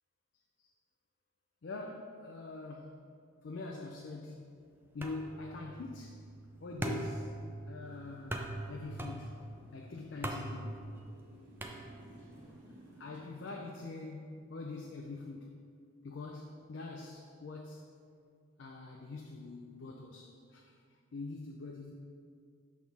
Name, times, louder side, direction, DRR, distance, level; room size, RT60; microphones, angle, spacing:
voice 1, 1.6-3.0 3.4-4.6 4.9-6.2 6.6-7.3 7.7-9.4 9.7-10.8 13.0-15.6 16.0-18.0 18.6-20.7 21.1-21.9, left 3 dB, 55° left, 0 dB, 0.5 m, -44 dB
sound 1, 5.0-12.4, right 1 dB, 10° right, 0.3 m, -42 dB
Motorcycle, 7.8-13.3, right 1 dB, 55° right, 1.2 m, -57 dB
6.2 x 3.6 x 5.9 m, 2.2 s
head